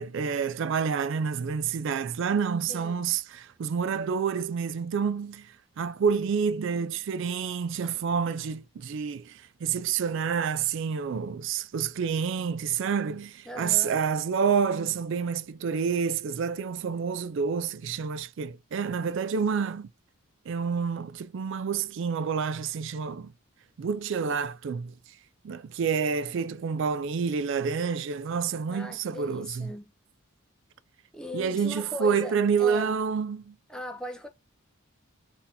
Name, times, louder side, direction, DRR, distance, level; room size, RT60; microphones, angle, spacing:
voice 1, 0.0-19.9 20.5-23.3 23.8-24.9 25.4-29.7 31.3-33.6, right 6 dB, 55° right, 0.3 m, -28 dB
voice 2, 2.7-3.0 13.5-14.0 28.7-29.9 31.1-32.9 33.7-34.3, left 2 dB, 5° left, 0.5 m, -39 dB
4.0 x 2.8 x 2.6 m
head